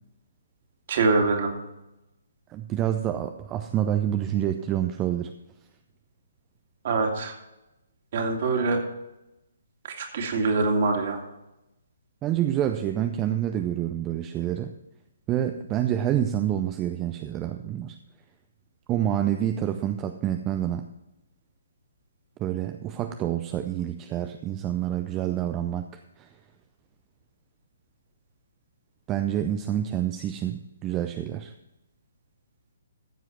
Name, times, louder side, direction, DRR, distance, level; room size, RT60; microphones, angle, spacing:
voice 1, 0.9-1.5 6.8-7.3 8.1-8.8 9.8-11.2, right 3 dB, 40° right, 3 dB, 2.3 m, -24 dB
voice 2, 2.5-5.3 12.2-14.7 15.3-18.0 18.9-20.9 22.4-26.3 29.1-31.5, right 11 dB, 20° right, 7 dB, 0.5 m, -27 dB
14.5 x 7.8 x 4.5 m, 0.94 s
figure-of-eight pair, 130°, 0 cm